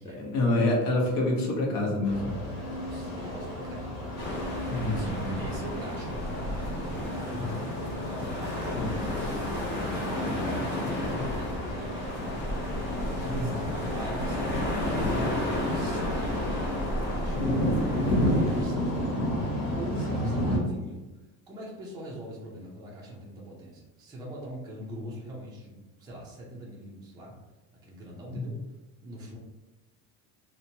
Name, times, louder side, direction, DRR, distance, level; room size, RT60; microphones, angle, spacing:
voice 1, 0.2-2.4 4.7-5.4 7.3-7.5 8.7-8.9 20.1-20.2 28.3-28.5, left 2 dB, 60° left, -1 dB, 0.9 m, -27 dB
sound 1, 2.0-20.6, equal, 90° left, 1.0 m, -32 dB
voice 2, 2.8-4.2 4.5-9.4 9.6-12.9 13.2-17.5 18.0-21.1 21.5-27.3 27.8-28.6 29.0-29.4, right 1 dB, 10° right, -4 dB, 0.4 m, -42 dB
sound 2, 4.2-18.6, left 1 dB, 30° left, 0.6 m, -32 dB
2.9 x 2.1 x 2.7 m, 1.1 s
cardioid pair, 155°, 37 cm